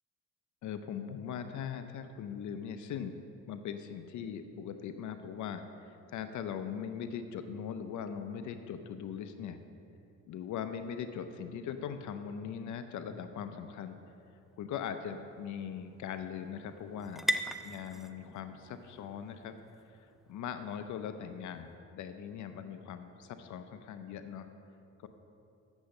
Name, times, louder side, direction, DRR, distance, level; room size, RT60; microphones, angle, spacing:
voice 1, 0.6-3.1 3.5-9.6 10.3-14.0 14.6-17.2 17.6-19.5 19.9-20.0 20.3-24.5 25.0-25.1, left 8 dB, 75° left, 8 dB, 0.7 m, -40 dB
sound 1, 14.0-21.5, equal, ahead, 0.4 m, -42 dB
8.3 x 7.1 x 6.5 m, 2.7 s
cardioid pair, 90°, 30 cm